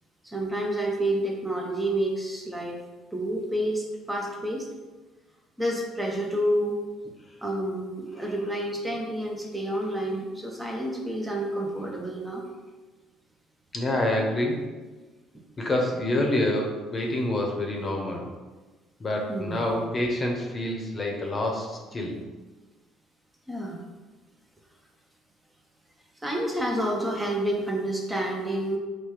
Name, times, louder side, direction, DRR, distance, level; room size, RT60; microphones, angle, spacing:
voice 1, 0.2-2.8 3.1-4.7 5.6-6.8 7.4-12.4 19.3-19.7 23.5-23.8 26.2-28.8, right 1 dB, 10° right, 0 dB, 0.6 m, -29 dB
voice 2, 13.7-14.6 15.6-18.3 19.0-22.2, left 1 dB, 30° left, 1 dB, 0.8 m, -27 dB
4.0 x 2.2 x 3.2 m, 1.3 s
supercardioid pair, 70°, 0 cm